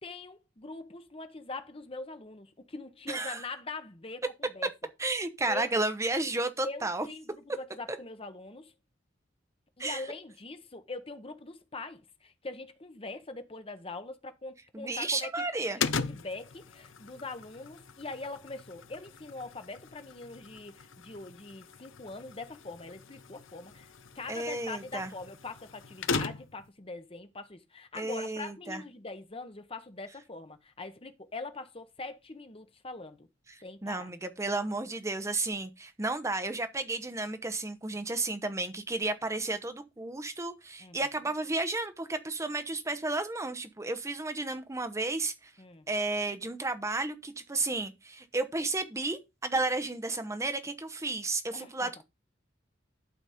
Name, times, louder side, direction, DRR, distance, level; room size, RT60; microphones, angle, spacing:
voice 1, 0.0-4.7 5.5-5.7 6.6-8.7 9.8-33.3 33.6-34.1 40.8-41.0 45.6-45.9 51.5-51.9, left 3 dB, 30° left, 1.0 m, -43 dB
voice 2, 3.1-3.5 5.0-7.1 9.8-10.0 14.7-15.8 24.3-25.1 27.9-28.8 33.5-45.5 45.9-52.0, right 2 dB, 15° right, 0.8 m, -32 dB
sound 1, 15.8-26.7, left 5 dB, 85° left, 0.8 m, -39 dB
12.0 x 4.1 x 5.0 m
head